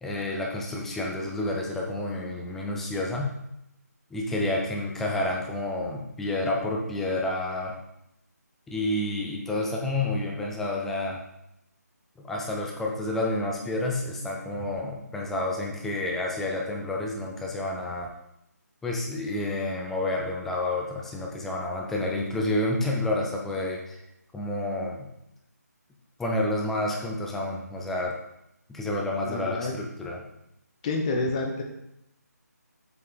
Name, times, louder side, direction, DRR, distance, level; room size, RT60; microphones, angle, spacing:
voice 1, 0.0-3.4 4.1-7.7 8.7-11.2 12.2-18.1 18.8-24.0 24.3-25.1 26.2-28.1 28.7-30.2, left 2 dB, 5° left, -1 dB, 0.5 m, -29 dB
voice 2, 29.2-29.7 30.8-31.6, left 3 dB, 20° left, 2 dB, 1.0 m, -28 dB
7.9 x 5.5 x 3.9 m, 0.81 s
figure-of-eight pair, 160°, 9 cm